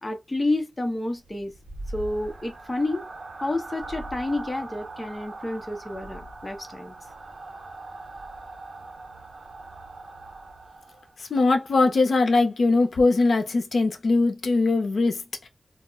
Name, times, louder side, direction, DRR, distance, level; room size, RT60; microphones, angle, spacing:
voice 1, 0.0-1.5 1.9-3.1 3.4-7.0, left 2 dB, 25° left, 0.6 m, -29 dB
sound 1, 1.2-11.2, right 2 dB, 65° right, 0.6 m, -41 dB
voice 2, 11.2-15.5, left 3 dB, 80° left, 0.5 m, -21 dB
2.3 x 2.0 x 3.4 m
wide cardioid pair, 110°, 0 cm